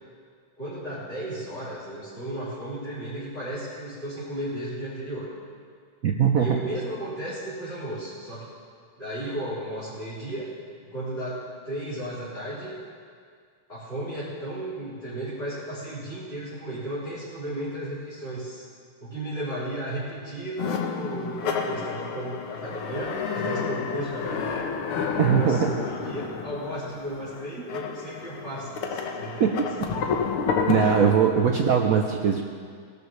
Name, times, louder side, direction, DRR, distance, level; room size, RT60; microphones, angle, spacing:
voice 1, 0.6-5.3 6.4-8.5 9.0-10.5 10.8-12.8 13.7-18.6 19.0-24.7 25.1-29.9, right 1 dB, 25° left, -11 dB, 4.8 m, -34 dB
voice 2, 6.0-6.6 25.2-25.7 29.4-29.7 30.7-32.4, right 7 dB, 70° right, 2 dB, 0.8 m, -21 dB
sound 1, 20.6-31.1, left 6 dB, 85° left, 1.9 m, -30 dB
20.5 x 12.0 x 3.3 m, 2.1 s
omnidirectional pair, 2.3 m